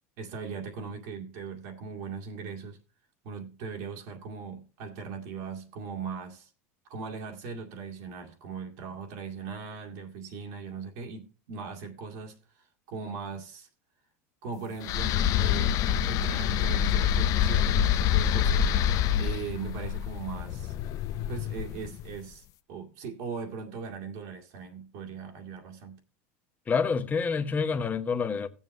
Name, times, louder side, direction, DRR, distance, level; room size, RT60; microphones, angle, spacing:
voice 1, 0.2-2.8 3.2-6.5 6.9-13.7 14.4-15.8 16.1-18.7 19.1-20.8 21.3-26.0, right 5 dB, 70° right, 2.1 m, -39 dB
sound 1, 14.8-22.0, left 9 dB, 50° left, 0.6 m, -26 dB
voice 2, 26.7-28.5, left 5 dB, 20° left, 0.9 m, -27 dB
16.0 x 7.2 x 3.2 m
supercardioid pair, 110°, 7 cm